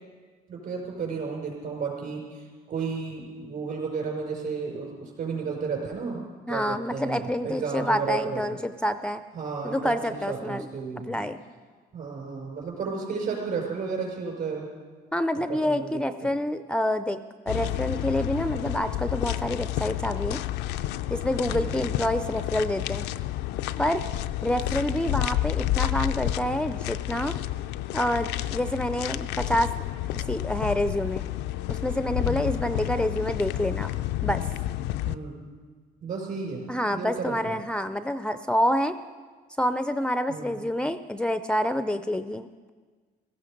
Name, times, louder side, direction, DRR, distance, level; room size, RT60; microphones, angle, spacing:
voice 1, 0.5-8.6 9.3-11.2 11.9-14.7 15.3-16.3 21.5-21.8 32.2-32.6 35.0-35.4 36.0-37.3 40.3-40.6, right 5 dB, 60° right, 0 dB, 5.6 m, -33 dB
voice 2, 6.5-9.2 9.6-10.7 11.1-11.4 15.1-17.2 17.5-20.4 21.1-23.0 23.8-24.0 24.4-27.3 27.9-29.7 30.3-31.2 31.7-33.9 34.2-34.4 36.7-39.0 39.6-42.7, left 1 dB, 5° left, 10 dB, 0.4 m, -27 dB
sound 1, 17.5-35.2, left 14 dB, 85° left, 0.5 m, -30 dB
17.0 x 14.5 x 5.2 m, 1.5 s
cardioid pair, 110°, 17 cm